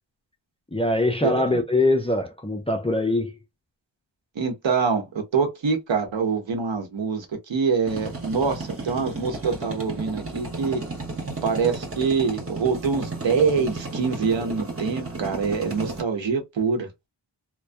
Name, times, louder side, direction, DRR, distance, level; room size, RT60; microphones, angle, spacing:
voice 1, 0.7-3.4, left 2 dB, 15° left, 0.4 m, -23 dB
voice 2, 1.2-1.6 4.4-10.8 11.4-16.9, right 5 dB, 75° right, 0.9 m, -25 dB
sound 1, 7.9-16.0, right 3 dB, 30° right, 1.0 m, -33 dB
2.5 x 2.1 x 2.2 m
wide cardioid pair, 90°, 45 cm